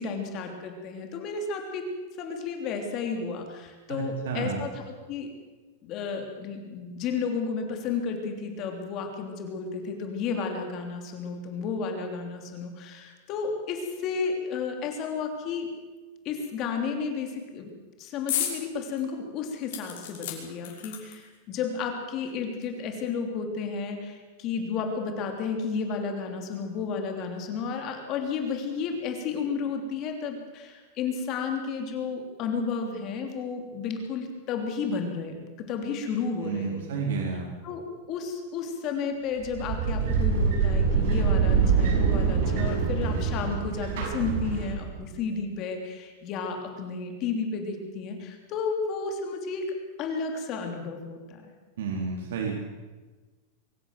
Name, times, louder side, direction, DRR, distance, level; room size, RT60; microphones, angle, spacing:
voice 1, 0.0-1.8 2.2-4.8 5.1-5.3 5.8-15.7 16.2-17.7 18.0-36.8 37.6-49.7 50.0-51.5, left 5 dB, 35° left, 4 dB, 3.2 m, -32 dB
voice 2, 3.9-4.6 36.4-37.5 51.8-52.6, right 5 dB, 85° right, 0 dB, 3.8 m, -31 dB
sound 1, 18.3-18.6 19.0-19.1 19.7-21.4 22.3-22.4 22.6-22.7, left 10 dB, 65° left, 5.8 m, -33 dB
sound 2, 39.4-45.0, right 6 dB, 60° right, 6.9 m, -25 dB
24.0 x 14.5 x 7.6 m, 1.3 s
supercardioid pair, 165°, 0 cm